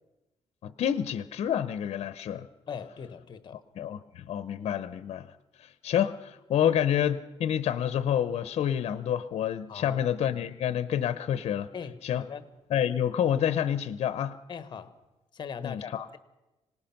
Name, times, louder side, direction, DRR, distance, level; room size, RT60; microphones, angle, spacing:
voice 1, 0.6-2.5 3.8-5.3 5.6-11.7 12.0-12.2 12.7-14.4 15.6-16.0, left 9 dB, 65° left, 13 dB, 0.8 m, -28 dB
voice 2, 2.7-3.6 6.6-6.7 9.7-10.0 11.7-12.5 14.5-14.9 15.3-16.2, left 6 dB, 45° left, 12 dB, 1.3 m, -40 dB
25.5 x 18.5 x 5.9 m, 1.0 s
cardioid pair, 135°, 11 cm